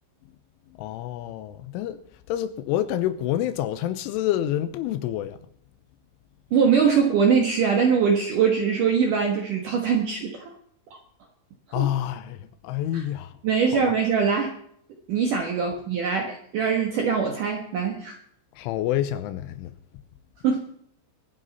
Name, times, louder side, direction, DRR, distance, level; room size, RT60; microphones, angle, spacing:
voice 1, 0.7-2.0 2.3-5.4 11.7-13.4 13.7-13.9 18.6-19.7, left 12 dB, 80° left, 3.2 m, -28 dB
voice 2, 6.5-10.5 11.8-11.9 12.9-13.0 13.4-14.5 15.1-18.2 20.4-20.6, right 6 dB, 70° right, 2.0 m, -22 dB
24.5 x 10.0 x 4.1 m
omnidirectional pair, 5.8 m